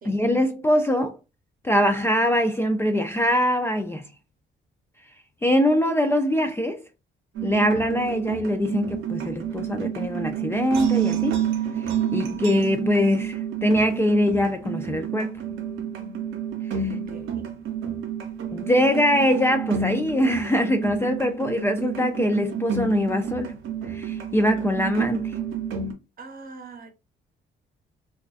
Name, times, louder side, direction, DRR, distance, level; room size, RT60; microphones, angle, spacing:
voice 1, 0.0-1.2 1.6-4.0 5.4-6.8 7.4-11.4 11.8-15.4 16.7-16.8 18.5-23.6 23.9-25.4, equal, 10° left, 0.3 m, -23 dB
sound 1, 7.3-25.9, right 7 dB, 85° right, 0.6 m, -29 dB
voice 2, 16.8-17.5 26.2-26.9, right 3 dB, 45° right, 0.8 m, -43 dB
2.3 x 2.3 x 2.4 m
cardioid pair, 90°, 20 cm